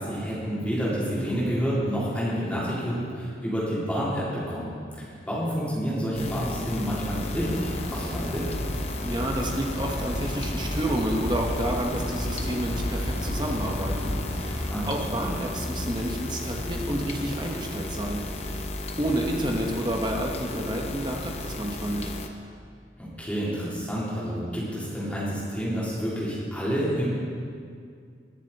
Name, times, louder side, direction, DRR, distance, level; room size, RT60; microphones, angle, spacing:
voice 1, 0.0-4.7 5.0-8.5 14.5-14.9 23.0-27.1, equal, 5° left, -9 dB, 3.5 m, -29 dB
sound 1, 6.1-22.3, left 2 dB, 35° left, 0.7 m, -34 dB
sound 2, 7.4-14.6, equal, 80° left, 1.7 m, -34 dB
voice 2, 9.0-18.7 19.0-22.1, right 1 dB, 25° right, 0 dB, 1.2 m, -30 dB
20.0 x 7.3 x 4.2 m, 2.2 s
head